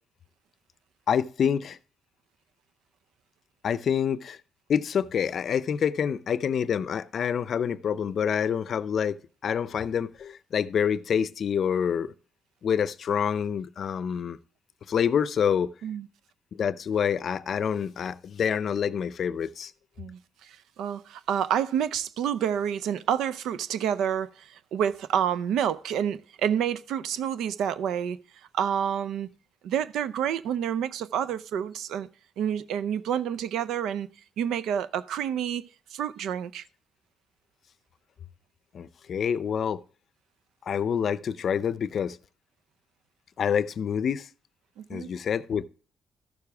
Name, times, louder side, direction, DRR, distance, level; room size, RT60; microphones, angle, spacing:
voice 1, 1.1-1.8 3.6-4.4 4.7-9.2 9.4-12.1 12.6-14.4 14.9-15.7 16.5-19.7 38.7-39.8 40.7-42.2 43.4-44.3 44.9-45.6, left 7 dB, 55° left, 0.5 m, -27 dB
voice 2, 20.0-28.2 28.5-29.3 29.6-32.1 32.4-34.1 34.4-35.6 35.9-36.6 44.8-45.1, right 9 dB, 80° right, 0.5 m, -28 dB
13.5 x 6.8 x 3.4 m
cardioid pair, 90°, 0 cm